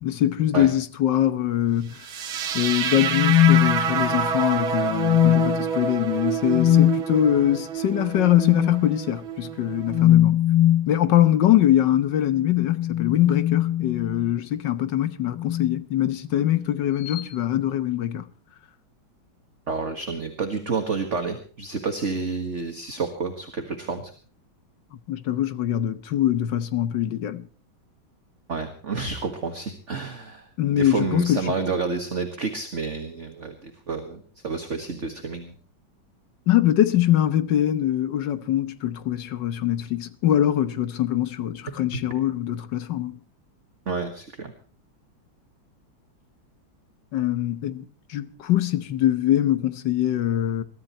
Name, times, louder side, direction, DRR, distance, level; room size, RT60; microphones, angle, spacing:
voice 1, 0.0-2.1 2.5-10.4 10.9-18.3 25.1-27.4 30.6-31.5 36.5-43.2 47.1-47.8 48.1-50.6, left 12 dB, 65° left, 1.6 m, -23 dB
sound 1, 2.0-10.0, right 7 dB, 85° right, 2.1 m, -28 dB
sound 2, 3.0-4.3 4.9-5.7 6.5-7.0 8.4-8.7 9.9-10.9 12.4-14.3 15.3-15.8 17.0-17.3, left 13 dB, 85° left, 1.9 m, -21 dB
voice 2, 19.7-24.1 28.5-30.4 30.7-35.5 43.9-44.5, right 4 dB, 40° right, 1.9 m, -29 dB
22.0 x 13.5 x 4.4 m
omnidirectional pair, 2.2 m